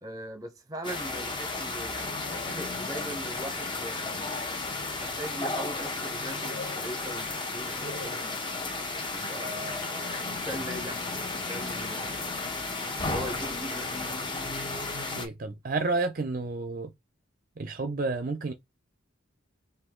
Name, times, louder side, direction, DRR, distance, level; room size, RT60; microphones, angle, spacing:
voice 1, 0.0-4.3 4.7-8.5 9.1-12.3 13.1-14.2, right 1 dB, 15° right, 1.0 m, -40 dB
sound 1, 0.8-15.3, left 3 dB, 25° left, 1.0 m, -33 dB
voice 2, 15.2-16.9 17.6-18.5, right 3 dB, 45° right, 0.5 m, -30 dB
4.8 x 2.4 x 3.7 m
head